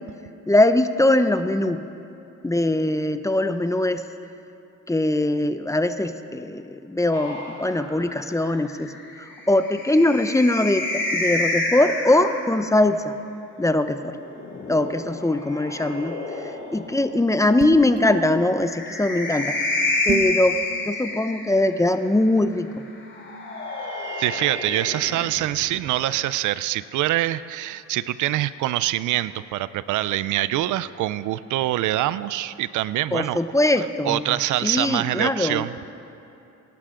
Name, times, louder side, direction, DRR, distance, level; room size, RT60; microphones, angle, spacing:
voice 1, 0.5-1.8 2.4-4.0 4.9-8.9 9.5-13.1 13.6-14.2 14.7-16.2 16.4-19.6 20.1-20.6 20.9-22.7 33.1-34.3 34.6-35.6, left 1 dB, 10° left, 9 dB, 0.7 m, -21 dB
sound 1, 7.1-12.7 14.0-17.0 18.4-21.8 23.1-26.0, left 2 dB, 40° left, 2.7 m, -29 dB
sound 2, 17.6-18.0 20.1-20.4, right 8 dB, 50° right, 1.0 m, -28 dB
voice 2, 24.2-33.4 33.8-35.8, right 14 dB, 80° right, 16 dB, 0.5 m, -25 dB
23.5 x 11.5 x 3.8 m, 2.8 s
cardioid pair, 90°, 30 cm